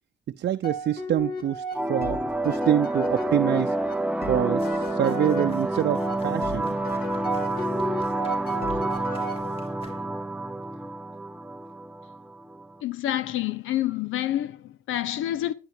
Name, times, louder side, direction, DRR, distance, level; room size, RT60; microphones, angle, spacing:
voice 1, 0.4-3.8 4.3-6.8, right 11 dB, 60° right, 0.7 m, -26 dB
sound 1, 0.6-9.9, left 1 dB, 50° left, 3.5 m, -35 dB
sound 2, 1.8-12.7, right 2 dB, 5° right, 0.6 m, -28 dB
sound 3, 4.6-10.4, left 2 dB, 30° left, 3.8 m, -50 dB
voice 2, 12.8-15.5, left 13 dB, 85° left, 1.0 m, -28 dB
11.0 x 10.5 x 4.6 m
cardioid pair, 90°, 20 cm